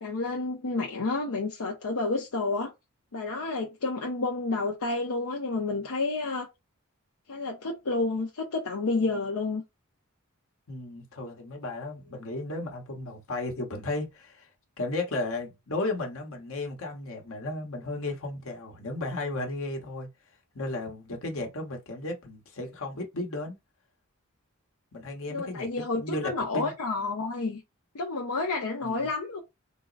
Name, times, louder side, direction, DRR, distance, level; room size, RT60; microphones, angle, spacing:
voice 1, 0.0-2.7 3.1-6.5 7.3-9.6 25.3-27.6 27.9-29.4, left 3 dB, 85° left, 0.7 m, -30 dB
voice 2, 10.7-14.5 14.8-20.1 20.5-23.6 24.9-26.7 28.8-29.1, left 2 dB, 65° left, 1.1 m, -34 dB
3.7 x 2.0 x 3.9 m
head